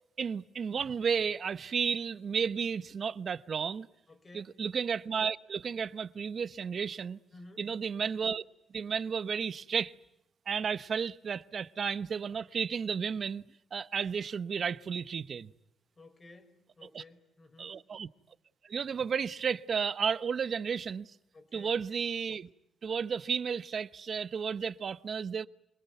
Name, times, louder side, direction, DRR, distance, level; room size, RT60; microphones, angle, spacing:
voice 1, 0.2-3.9 4.3-7.2 7.6-8.4 8.7-9.9 10.5-13.4 13.7-15.5 16.9-17.0 17.6-18.1 18.6-21.1 21.5-22.5 22.8-25.5, right 6 dB, 50° right, 0.9 m, -33 dB
voice 2, 4.1-4.6 7.3-7.7 16.0-17.7 21.3-21.8, left 2 dB, 30° left, 5.3 m, -54 dB
26.0 x 21.0 x 9.3 m
cardioid pair, 90°, 0 cm